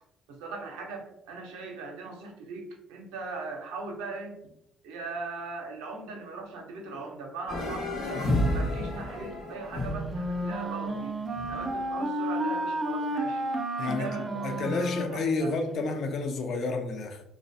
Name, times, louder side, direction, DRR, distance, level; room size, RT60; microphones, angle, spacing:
voice 1, 0.3-4.4 4.8-11.2 11.5-13.4 13.8-15.5, right 3 dB, 80° right, 0.5 m, -39 dB
sound 1, 7.5-11.7, left 1 dB, 75° left, 0.9 m, -31 dB
Wind instrument woodwind instrument, 9.7-15.9, right 1 dB, 25° right, 0.4 m, -32 dB
voice 2, 13.8-17.2, left 3 dB, 60° left, 0.4 m, -31 dB
2.4 x 2.1 x 2.7 m
hypercardioid pair, 55°, 0 cm